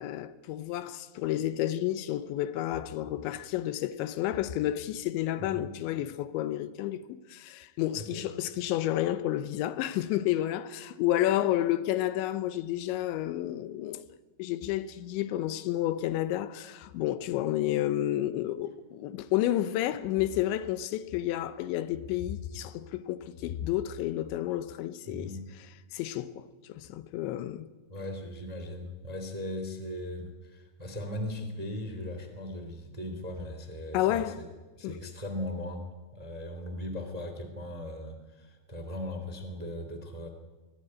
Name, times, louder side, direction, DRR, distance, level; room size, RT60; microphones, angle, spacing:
voice 1, 0.0-14.0 14.4-25.3 25.9-27.7 33.9-34.4 34.8-35.0, left 13 dB, 80° left, 3.2 m, -30 dB
voice 2, 5.4-5.7 7.9-8.2 25.1-25.5 27.9-34.4 34.8-35.8 36.1-40.3, left 1 dB, 10° right, 1.8 m, -38 dB
22.5 x 18.5 x 9.8 m
omnidirectional pair, 5.3 m